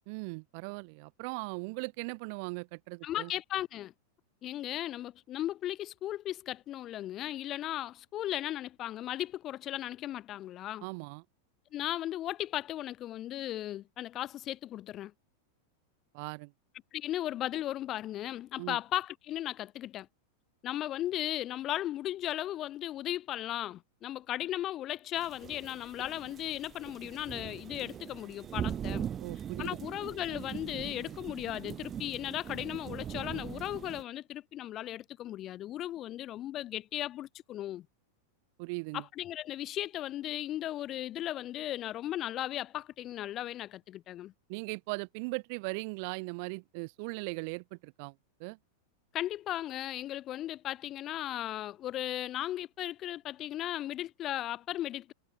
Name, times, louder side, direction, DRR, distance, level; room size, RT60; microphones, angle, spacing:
voice 1, 0.1-3.3 10.8-11.2 16.1-16.5 18.6-18.8 29.2-29.8 38.6-39.0 44.5-48.1 48.4-48.6, right 33 dB, 45° right, 2.8 m, -39 dB
voice 2, 3.0-3.9 4.4-10.8 11.7-15.1 16.9-20.1 20.6-29.1 29.6-37.9 38.9-44.3 49.1-55.1, left 13 dB, 30° left, 3.2 m, -36 dB
sound 1, 25.2-34.0, right 9 dB, 25° right, 4.0 m, -41 dB
figure-of-eight pair, 90°, 0 cm